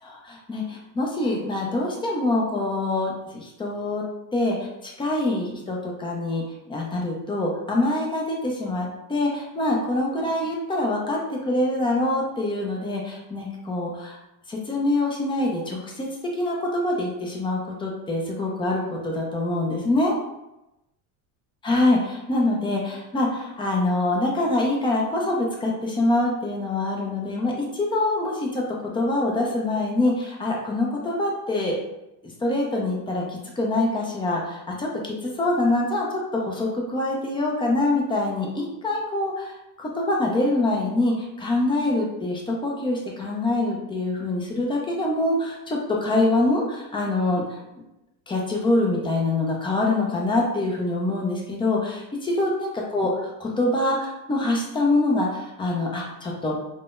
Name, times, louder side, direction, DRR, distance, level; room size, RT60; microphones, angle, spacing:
voice 1, 0.0-4.0 4.3-6.4 6.7-14.2 14.5-16.1 16.4-20.1 21.6-31.8 32.4-47.6 48.3-56.6, left 2 dB, 10° left, -1 dB, 0.3 m, -25 dB
3.5 x 2.1 x 2.4 m, 0.90 s
supercardioid pair, 120°, 49 cm